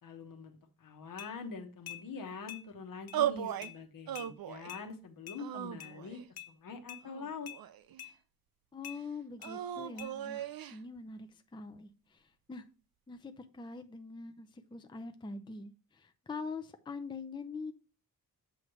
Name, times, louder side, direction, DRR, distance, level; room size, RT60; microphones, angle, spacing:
voice 1, 0.0-6.2 6.5-7.5, left 5 dB, 65° left, 5 dB, 1.2 m, -44 dB
sound 1, 1.2-1.3 1.9-2.0 2.5-2.6 3.1-3.2 3.6-3.7 4.1-4.3 4.7-4.8 5.3-5.4 5.8-5.9 6.4-6.5 6.9-7.0 7.5-7.6 8.0-8.1 8.8-9.0 9.4-9.5 10.0-10.1, left 12 dB, 90° left, 0.8 m, -45 dB
sound 2, 3.1-3.7 4.1-4.7 5.4-6.3 7.0-8.0 9.4-10.8, right 11 dB, 80° right, 0.6 m, -37 dB
voice 2, 8.7-12.6 13.1-17.7, left 4 dB, 15° left, 7 dB, 0.5 m, -44 dB
7.7 x 3.1 x 6.3 m, 0.36 s
wide cardioid pair, 145°, 35 cm